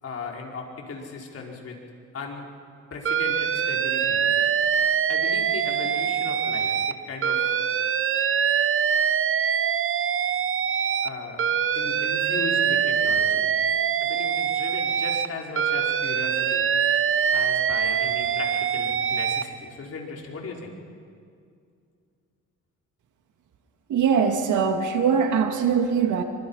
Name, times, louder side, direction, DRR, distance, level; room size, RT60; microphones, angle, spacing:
voice 1, 0.0-1.8 2.1-2.5 2.9-4.4 5.1-7.4 11.0-11.4 11.7-13.5 14.0-16.6 17.3-20.7, left 4 dB, 50° left, -1 dB, 5.1 m, -37 dB
Alarm, 3.1-6.9 7.2-11.1 11.4-15.3 15.6-19.4, right 8 dB, 45° right, 0.9 m, -24 dB
voice 2, 23.9-26.2, right 6 dB, 80° right, 5 dB, 2.4 m, -22 dB
27.5 x 24.5 x 5.7 m, 2.2 s
cardioid pair, 90°, 30 cm